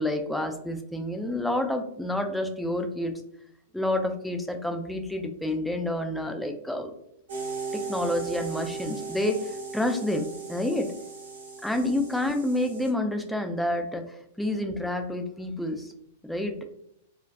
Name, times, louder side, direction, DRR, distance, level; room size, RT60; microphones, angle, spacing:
voice 1, 0.0-3.1 3.7-6.9 7.7-10.9 11.6-15.9 16.2-16.6, left 1 dB, ahead, 4 dB, 0.3 m, -29 dB
sound 1, 7.3-12.9, right 4 dB, 65° right, 0.8 m, -37 dB
2.3 x 2.2 x 2.5 m, 0.74 s
figure-of-eight pair, 100°, 0 cm